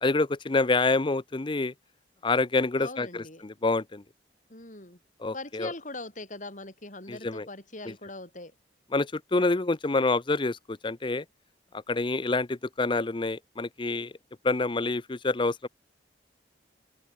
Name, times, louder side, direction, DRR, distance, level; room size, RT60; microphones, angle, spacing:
voice 1, 0.0-1.7 2.2-4.0 5.2-5.7 7.1-7.5 7.9-8.0 8.9-11.2 11.9-14.1 14.4-15.7, left 3 dB, 25° left, 0.6 m, -27 dB
voice 2, 2.8-3.4 4.5-5.0 5.3-8.5, left 2 dB, 45° left, 7.6 m, -41 dB
open air
head